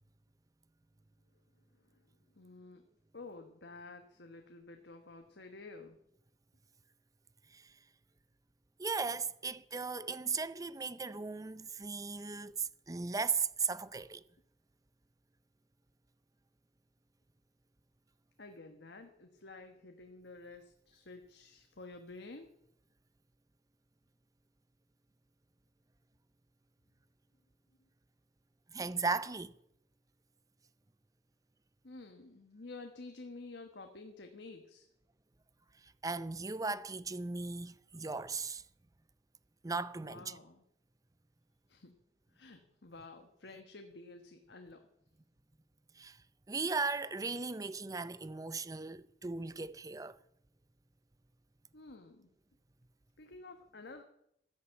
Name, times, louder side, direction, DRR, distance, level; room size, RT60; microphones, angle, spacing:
voice 1, 1.7-2.8 3.1-6.0 18.4-22.5 31.8-34.9 39.9-40.6 41.7-41.9 42.3-44.8 51.7-52.3 53.2-54.0, left 3 dB, 80° left, 1.4 m, -51 dB
voice 2, 8.8-14.2 28.7-29.5 36.0-38.6 39.6-40.3 46.0-46.2 46.5-50.2, right 4 dB, 20° right, 0.5 m, -37 dB
13.0 x 10.5 x 7.8 m
head